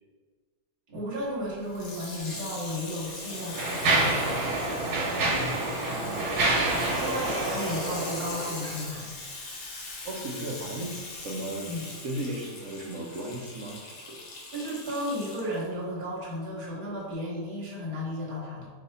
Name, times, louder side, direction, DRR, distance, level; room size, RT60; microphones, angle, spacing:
voice 1, 0.9-4.3 6.9-9.1 11.7-11.9 14.5-18.7, equal, 45° right, -5 dB, 1.3 m, -34 dB
Water tap faucet / Sink (filling or washing), 1.7-15.7 16.3-16.4, left 3 dB, 65° left, 1.2 m, -41 dB
Mechanisms, 2.2-2.3 3.1-8.8, right 2 dB, 90° right, 1.4 m, -28 dB
voice 2, 5.9-7.0 10.0-10.9 11.2-11.7 12.0-14.2, right 1 dB, 65° right, 0 dB, 1.0 m, -36 dB
3.4 x 2.8 x 4.0 m, 1.5 s
omnidirectional pair, 1.7 m